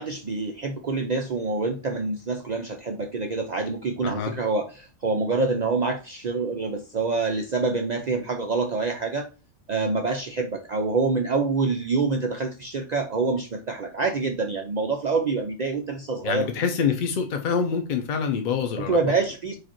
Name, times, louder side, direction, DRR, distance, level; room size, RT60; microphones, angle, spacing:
voice 1, 0.0-9.3 9.7-16.5 18.9-19.6, right 3 dB, 85° right, 3 dB, 0.3 m, -26 dB
voice 2, 4.0-4.3 16.2-19.0, left 6 dB, 55° left, 5 dB, 0.5 m, -26 dB
4.9 x 2.4 x 4.3 m, 0.33 s
omnidirectional pair, 1.4 m